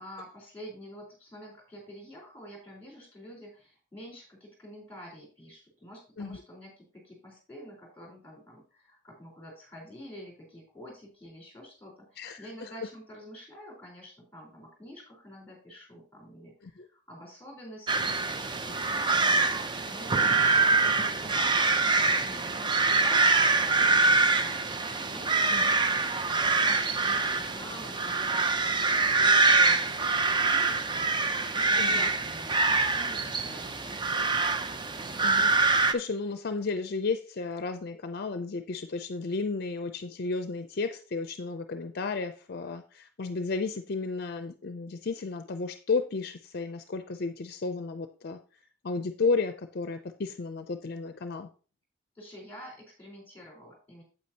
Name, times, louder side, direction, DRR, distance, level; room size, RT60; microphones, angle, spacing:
voice 1, 0.0-26.2 26.6-34.6 52.2-54.0, equal, 10° left, -1 dB, 4.1 m, -48 dB
voice 2, 12.2-12.7 16.8-16.9 25.5-25.7 31.8-32.1 35.2-48.4 48.8-51.5, left 4 dB, 55° left, 9 dB, 0.5 m, -33 dB
sound 1, 17.9-35.9, right 3 dB, 25° right, 0.5 m, -25 dB
8.5 x 8.2 x 2.8 m, 0.36 s
head